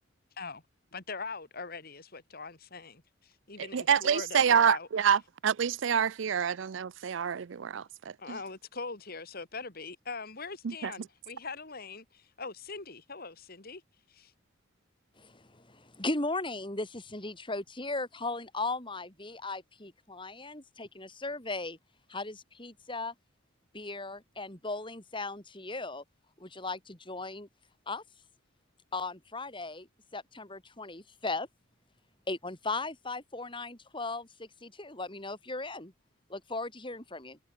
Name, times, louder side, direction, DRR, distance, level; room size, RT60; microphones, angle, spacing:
voice 1, 0.9-4.9 8.2-13.8 14.1-14.3, left 4 dB, 50° left, 2.3 m, -42 dB
voice 2, 3.6-7.8 8.3-8.4 10.6-10.9, right 7 dB, 65° right, 0.4 m, -27 dB
voice 3, 15.2-21.8 22.1-23.1 23.7-26.0 26.4-27.5 27.9-28.0 28.9-29.9 30.1-31.5 32.3-35.9 36.3-37.4, left 3 dB, 25° left, 4.0 m, -37 dB
head